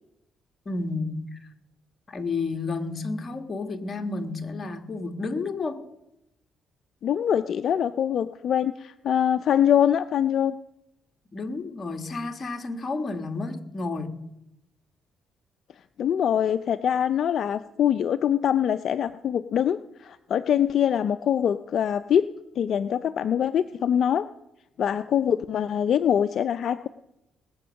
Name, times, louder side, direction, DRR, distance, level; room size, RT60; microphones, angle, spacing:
voice 1, 0.6-1.5 2.1-5.8 11.3-14.2, left 3 dB, 35° left, 5 dB, 1.6 m, -31 dB
voice 2, 7.0-10.6 16.0-22.3 22.6-24.3 24.8-26.9, left 9 dB, 65° left, 11 dB, 0.4 m, -24 dB
19.5 x 7.9 x 6.4 m, 0.88 s
cardioid pair, 90°, 0 cm